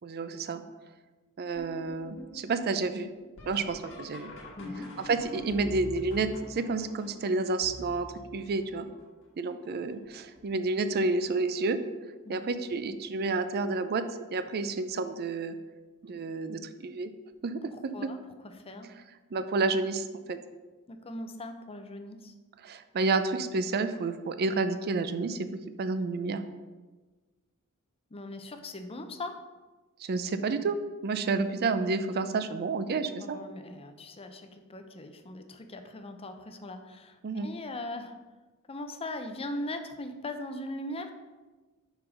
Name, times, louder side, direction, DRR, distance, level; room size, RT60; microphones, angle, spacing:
voice 1, 0.0-0.6 1.4-3.1 3.5-4.3 5.0-8.9 9.4-11.8 12.3-14.0 14.3-15.6 16.0-17.1 17.4-18.1 19.3-20.4 22.6-25.5 25.8-26.4 30.0-33.4 37.2-37.5, right 3 dB, 45° right, 10 dB, 0.4 m, -30 dB
sound 1, 1.5-9.2 9.9-10.4 10.9-11.5 12.8-12.9 13.6-13.9 16.1-16.2 18.5-18.6, equal, 60° left, 1.4 m, -46 dB
voice 2, 4.6-4.9 12.2-12.5 17.7-18.2 18.4-18.9 20.9-22.3 28.1-29.3 33.3-38.1 38.7-41.1, left 1 dB, 25° left, 7 dB, 0.6 m, -40 dB
5.5 x 4.8 x 5.0 m, 1.3 s
head